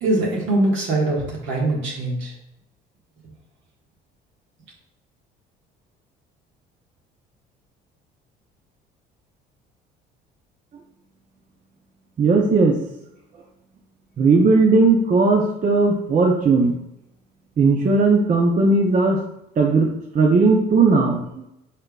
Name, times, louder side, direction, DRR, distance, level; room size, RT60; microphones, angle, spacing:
voice 1, 0.0-2.3, right 2 dB, 65° right, -2 dB, 1.6 m, -22 dB
voice 2, 12.2-12.8 14.2-16.8 17.6-19.2 19.6-21.4, right 3 dB, 40° right, 0 dB, 0.8 m, -17 dB
5.2 x 4.3 x 2.4 m, 0.82 s
supercardioid pair, 70°, 21 cm